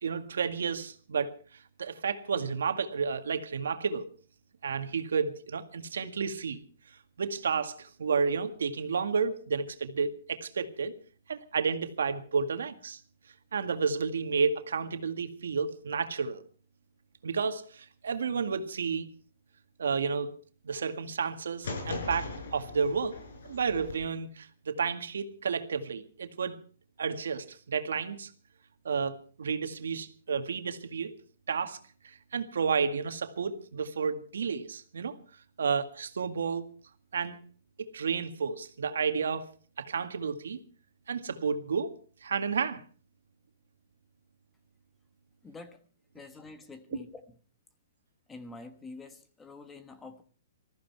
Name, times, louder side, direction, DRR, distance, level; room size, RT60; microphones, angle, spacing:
voice 1, 0.0-4.1 4.6-6.6 7.2-10.9 11.3-13.0 13.5-16.4 17.2-19.1 19.8-20.4 20.6-23.2 23.5-26.6 27.0-28.3 28.8-31.1 31.5-31.8 32.0-35.2 35.6-36.7 37.1-37.4 37.8-39.5 39.8-40.6 41.1-41.9 42.2-42.8, right 5 dB, 90° right, 1.9 m, -31 dB
sound 1, 21.6-23.9, left 3 dB, 70° left, 6.4 m, -39 dB
voice 2, 45.4-45.8 46.1-47.2 48.3-50.2, left 3 dB, 10° left, 1.3 m, -46 dB
20.0 x 14.5 x 4.6 m
hypercardioid pair, 160°, 0 cm